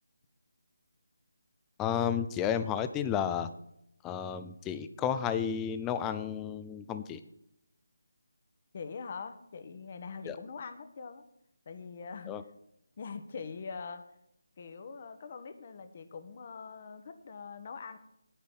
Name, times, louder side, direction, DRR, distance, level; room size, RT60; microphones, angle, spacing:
voice 1, 1.8-3.5 4.0-7.2 10.3-10.4 12.3-12.4, left 8 dB, 10° left, 11 dB, 0.5 m, -32 dB
voice 2, 8.7-11.2 11.6-12.3 13.0-14.0 14.6-18.0, left 5 dB, 40° left, 10 dB, 1.2 m, -43 dB
10.0 x 8.6 x 5.6 m, 0.79 s
figure-of-eight pair, 160°, 0 cm